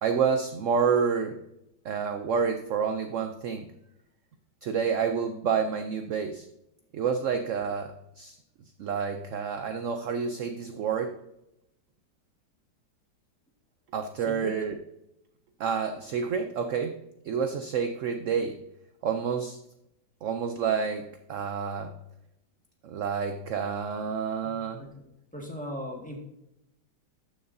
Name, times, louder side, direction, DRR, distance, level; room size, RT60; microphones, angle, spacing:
voice 1, 0.0-1.4 1.8-3.7 4.6-6.5 6.9-8.4 8.8-11.2 13.9-14.8 15.6-17.0 17.2-18.6 19.0-19.6 20.2-21.9 22.8-24.8, right 6 dB, 65° right, 7 dB, 0.8 m, -29 dB
voice 2, 14.2-14.6 24.4-24.9 25.3-26.2, equal, 5° left, 0 dB, 1.5 m, -39 dB
13.0 x 6.3 x 2.7 m, 0.85 s
omnidirectional pair, 1.9 m